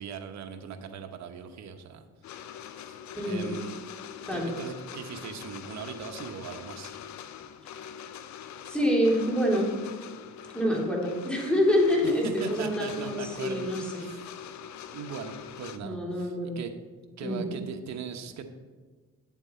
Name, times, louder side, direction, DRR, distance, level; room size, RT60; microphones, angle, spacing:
voice 1, 0.0-2.1 2.9-3.8 4.3-6.9 12.2-14.2 14.9-16.7 17.2-18.4, right 6 dB, 65° right, 6 dB, 1.0 m, -39 dB
sound 1, 2.2-15.8, left 9 dB, 70° left, 0.7 m, -43 dB
voice 2, 3.1-3.5 4.3-4.5 8.7-9.7 10.5-14.1 15.8-16.6 17.2-17.5, equal, 5° left, -2 dB, 2.9 m, -26 dB
9.3 x 7.5 x 4.3 m, 1.5 s
cardioid pair, 90°, 30 cm